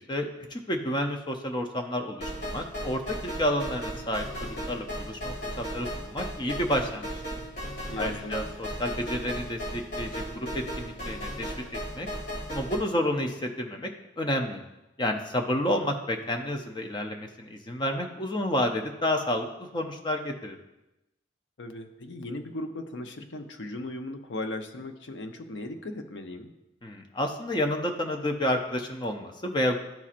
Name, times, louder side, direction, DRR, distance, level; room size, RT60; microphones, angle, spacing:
voice 1, 0.0-4.3 4.7-7.2 8.0-11.5 11.9-12.1 12.5-13.9 14.2-14.6 15.0-20.6 26.8-29.8, left 1 dB, 25° left, 4 dB, 0.5 m, -30 dB
sound 1, 2.2-12.8, equal, 50° left, 2.4 m, -36 dB
voice 2, 7.9-8.6 21.6-26.5, left 2 dB, 80° left, 6 dB, 0.7 m, -37 dB
12.0 x 4.2 x 2.5 m, 0.95 s
head